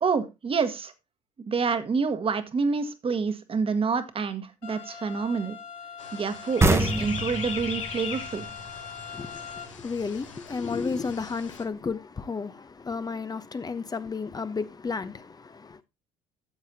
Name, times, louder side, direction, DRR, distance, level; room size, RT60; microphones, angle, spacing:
voice 1, 0.0-0.9 1.4-5.6 6.1-8.5, right 5 dB, 35° right, 1.6 m, -27 dB
sound 1, 4.6-9.6, left 7 dB, 65° left, 3.3 m, -42 dB
sound 2, 6.0-11.6, left 6 dB, 90° left, 1.2 m, -39 dB
sound 3, 6.6-10.0, right 1 dB, 15° right, 1.3 m, -27 dB
voice 2, 9.1-15.8, left 5 dB, 25° left, 0.9 m, -33 dB
13.5 x 7.4 x 2.8 m
hypercardioid pair, 55°, 16 cm